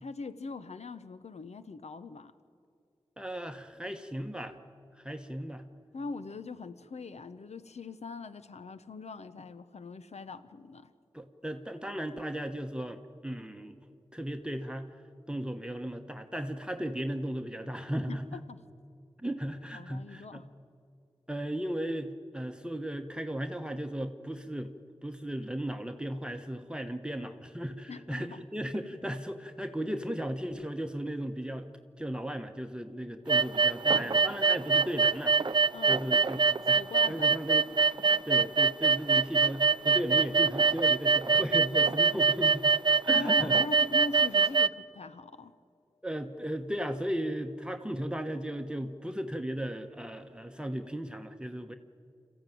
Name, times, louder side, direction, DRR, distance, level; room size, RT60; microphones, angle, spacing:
voice 1, 0.0-2.3 5.9-10.9 18.1-18.6 19.7-20.5 27.9-28.4 35.7-36.3 36.7-37.3 43.1-45.5, left 4 dB, 85° left, 12 dB, 0.8 m, -42 dB
voice 2, 3.2-4.6 5.0-5.6 11.1-13.8 14.1-14.9 15.3-18.4 19.2-20.4 21.3-24.7 25.0-31.7 32.0-35.4 35.9-36.8 37.1-37.6 38.2-42.8 43.1-43.6 46.0-51.7, equal, 10° right, 5 dB, 1.1 m, -36 dB
sound 1, 33.3-44.7, right 5 dB, 45° right, 0.5 m, -24 dB
27.0 x 14.5 x 9.3 m, 2.5 s
wide cardioid pair, 60°, 11 cm